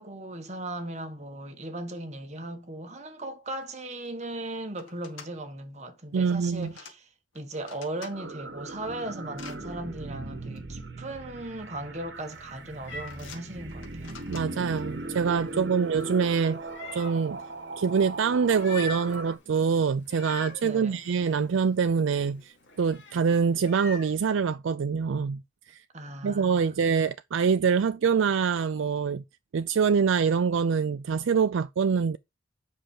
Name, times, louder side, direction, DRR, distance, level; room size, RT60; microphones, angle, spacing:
voice 1, 0.0-7.1 7.3-14.2 15.5-15.7 20.6-21.0 25.9-26.8, right 1 dB, 35° right, 1.3 m, -38 dB
sound 1, 3.6-3.7 3.9-4.3 4.7-5.3 6.2-6.9 7.3-8.1 8.6-9.6 10.6-10.7 11.6-12.0 12.3-12.6 13.1-14.8, left 5 dB, 80° left, 2.1 m, -48 dB
voice 2, 6.1-6.7 14.3-16.6 16.9-17.4 17.8-22.5 22.8-25.4 25.7-25.8 26.2-29.2 29.5-32.2, right 6 dB, 80° right, 0.4 m, -25 dB
sound 2, 8.1-19.4, right 2 dB, 55° right, 1.5 m, -39 dB
Meow, 12.1-24.2, left 3 dB, 65° left, 2.4 m, -46 dB
7.8 x 5.7 x 4.8 m
head